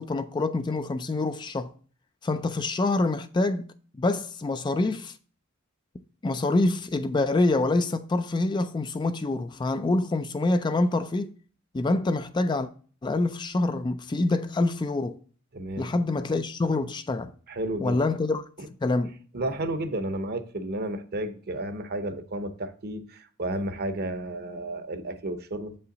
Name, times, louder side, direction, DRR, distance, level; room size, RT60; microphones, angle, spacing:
voice 1, 0.0-1.7 2.2-3.7 4.0-5.1 6.2-11.3 11.7-12.7 13.0-15.2 15.8-17.3 17.8-18.4 18.8-19.2, left 2 dB, 20° left, 0.3 m, -26 dB
voice 2, 15.5-15.9 17.5-18.0 18.6-18.7 19.3-25.8, right 1 dB, 50° right, 0.8 m, -32 dB
7.2 x 5.6 x 3.9 m
head